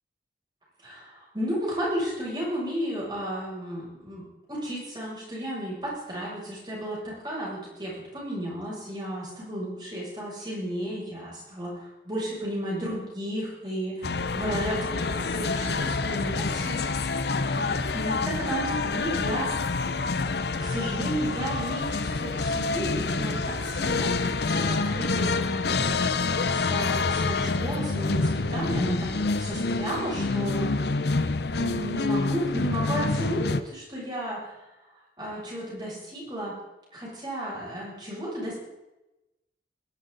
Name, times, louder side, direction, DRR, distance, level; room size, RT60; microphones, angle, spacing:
voice 1, 0.8-16.8 17.6-19.7 20.6-25.6 26.4-30.7 31.5-34.5 35.2-36.5 36.9-38.6, equal, 25° right, -5 dB, 7.1 m, -33 dB
sound 1, 14.0-33.6, left 3 dB, 70° left, 0.8 m, -27 dB
21.0 x 12.0 x 4.1 m, 0.98 s
head